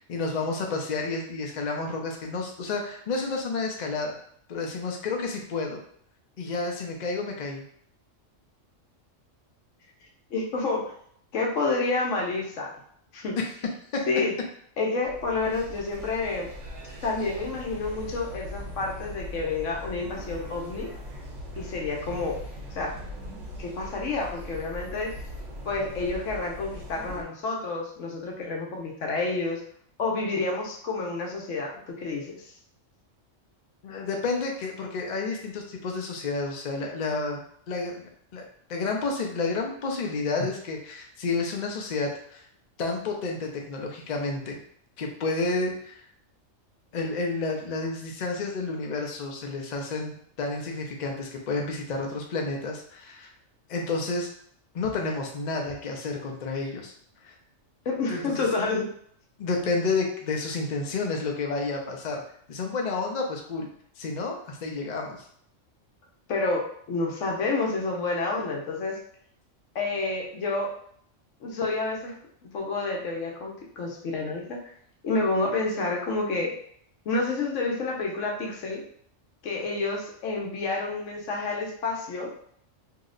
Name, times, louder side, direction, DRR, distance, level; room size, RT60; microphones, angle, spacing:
voice 1, 0.1-4.2 4.5-5.8 6.4-7.6 13.9-14.1 33.8-37.4 37.7-38.4 38.7-42.5 42.8-44.6 45.0-46.0 46.9-53.3 53.7-54.3 54.7-56.9 57.2-57.4 58.1-58.5 59.4-62.2 62.5-63.7 64.0-65.3, left 3 dB, 50° left, 1 dB, 0.5 m, -30 dB
voice 2, 10.3-10.9 11.3-12.7 13.1-13.4 14.1-14.3 14.8-16.5 17.0-20.9 21.6-22.4 22.7-22.9 23.6-25.1 25.6-29.6 30.0-32.5 57.8-58.9 66.3-69.0 69.7-70.7 71.4-72.2 72.4-74.6 75.0-76.5 77.0-78.8 79.4-82.3, left 3 dB, 75° left, -1 dB, 1.1 m, -29 dB
sound 1, 15.0-27.2, equal, 70° right, 1.1 m, -40 dB
2.8 x 2.1 x 3.7 m, 0.65 s
omnidirectional pair, 1.3 m